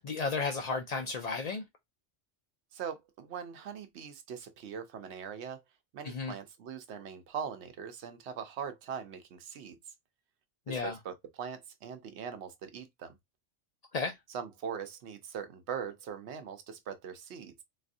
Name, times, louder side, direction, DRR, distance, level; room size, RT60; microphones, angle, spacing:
voice 1, 0.0-1.6 6.0-6.3 10.7-10.9 13.9-14.1, left 4 dB, 55° left, 0.4 m, -33 dB
voice 2, 2.7-5.6 5.9-9.8 10.7-13.2 14.3-17.6, right 7 dB, 70° right, 0.9 m, -41 dB
4.0 x 2.5 x 2.5 m
omnidirectional pair, 1.2 m